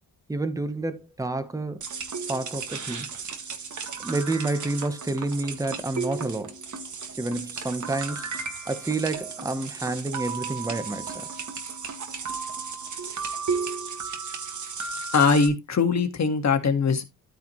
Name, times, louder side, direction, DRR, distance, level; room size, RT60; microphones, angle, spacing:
voice 1, 0.3-1.8 2.3-3.1 4.0-6.6 7.2-8.3 8.7-11.3, right 2 dB, 10° right, 0.9 m, -29 dB
sound 1, 1.8-15.5, right 5 dB, 50° right, 1.7 m, -34 dB
voice 2, 15.1-17.0, left 5 dB, 45° left, 1.6 m, -21 dB
13.0 x 4.7 x 3.0 m
wide cardioid pair, 155°, 37 cm